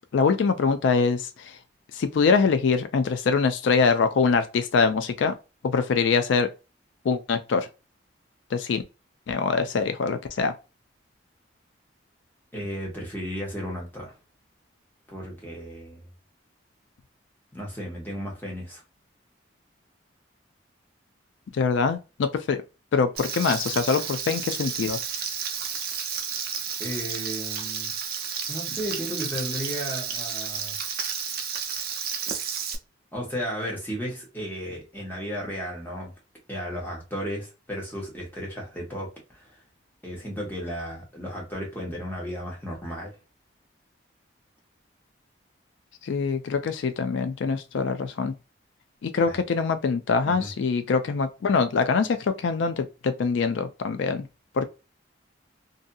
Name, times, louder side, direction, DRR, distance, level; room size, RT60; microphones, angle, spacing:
voice 1, 0.1-1.3 1.9-5.3 5.6-6.5 7.1-7.7 8.5-8.8 9.3-10.5 21.5-22.6 22.9-25.0 46.0-48.3 49.0-54.3 54.6-54.7, left 5 dB, 75° left, 0.3 m, -24 dB
voice 2, 12.5-14.1 15.1-16.1 17.5-18.8 26.8-27.9 28.5-30.7 33.1-36.1 36.5-39.6 40.0-43.2 49.3-49.4 50.2-50.5, equal, 10° left, 1.1 m, -34 dB
Frying (food), 23.2-32.7, right 7 dB, 50° right, 0.5 m, -32 dB
2.7 x 2.6 x 2.3 m
head